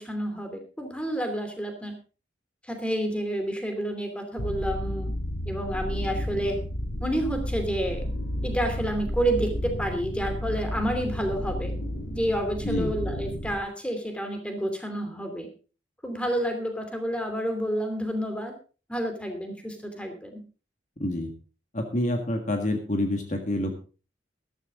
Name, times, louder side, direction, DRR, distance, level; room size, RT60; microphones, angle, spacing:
voice 1, 0.0-1.9 2.6-5.1 5.5-6.6 7.0-8.0 8.4-11.7 12.1-15.5 16.0-18.5 18.9-20.4, right 1 dB, 5° left, 6 dB, 2.8 m, -29 dB
sound 1, 4.4-13.6, equal, 70° left, 5.0 m, -32 dB
voice 2, 12.6-13.0 21.0-21.3 21.7-23.8, left 1 dB, 40° left, 4 dB, 1.7 m, -27 dB
13.5 x 13.5 x 3.7 m, 0.36 s
head